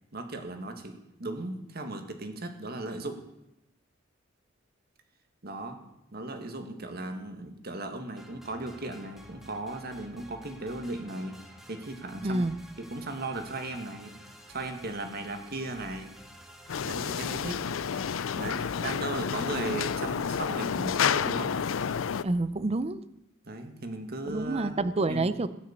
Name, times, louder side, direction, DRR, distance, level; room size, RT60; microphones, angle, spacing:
voice 1, 0.1-3.2 5.4-5.8 6.1-11.4 11.7-12.5 12.8-14.1 14.5-16.1 16.8-17.6 18.3-21.5 23.4-24.7 25.1-25.3, right 2 dB, 50° right, 6 dB, 1.8 m, -37 dB
sound 1, 8.2-18.8, equal, ahead, 1.3 m, -51 dB
voice 2, 12.2-12.5 22.2-23.0 24.3-25.5, right 2 dB, 30° right, 14 dB, 0.6 m, -28 dB
sound 2, 16.7-22.2, left 7 dB, 90° left, 0.5 m, -30 dB
17.0 x 6.4 x 8.2 m, 0.85 s
head